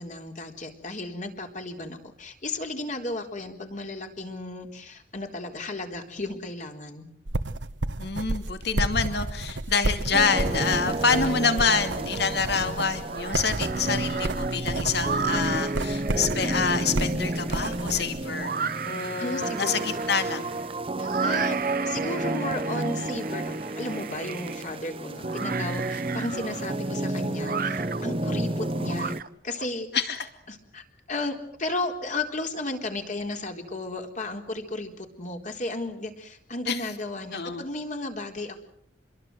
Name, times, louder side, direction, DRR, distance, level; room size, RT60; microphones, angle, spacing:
voice 1, 0.0-7.1 19.2-20.0 21.0-29.2 29.4-29.9 30.5-38.6, left 2 dB, 45° left, 4 dB, 4.0 m, -34 dB
sound 1, 7.3-18.2, right 2 dB, 90° right, 1.3 m, -32 dB
voice 2, 8.0-18.5 18.8-20.5 29.9-30.3 36.7-36.8 37.3-37.7, left 5 dB, 65° left, 8 dB, 2.6 m, -27 dB
sound 2, 10.1-29.2, right 2 dB, 30° right, 1.0 m, -31 dB
sound 3, 11.9-12.6 12.9-29.7, right 6 dB, 50° right, 1.3 m, -36 dB
27.5 x 22.0 x 8.0 m, 0.64 s
head